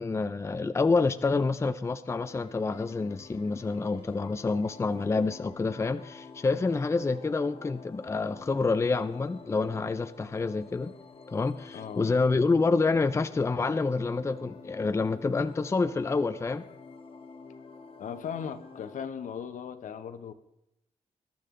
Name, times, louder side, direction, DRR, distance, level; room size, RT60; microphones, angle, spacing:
voice 1, 0.0-10.9 11.3-16.6, left 3 dB, 20° left, 0.5 m, -28 dB
sound 1, 2.2-19.1, left 4 dB, 45° left, 1.2 m, -49 dB
voice 2, 11.7-12.1 18.0-20.3, left 7 dB, 75° left, 1.0 m, -38 dB
21.0 x 12.0 x 3.8 m
cardioid pair, 110°, 13 cm